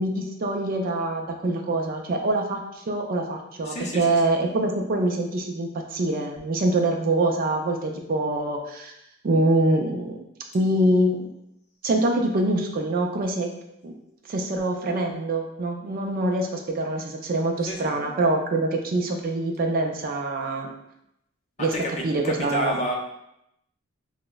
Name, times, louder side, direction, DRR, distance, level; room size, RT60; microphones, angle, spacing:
voice 1, 0.0-8.9 9.2-10.2 10.5-11.3 11.8-13.5 13.8-13.9 14.3-20.7 21.6-21.7 22.0-22.7, right 2 dB, 45° right, 2 dB, 0.4 m, -24 dB
voice 2, 3.6-4.2 17.7-17.9 21.6-22.9, equal, 30° left, -1 dB, 0.5 m, -30 dB
4.8 x 2.0 x 2.2 m, 0.81 s
head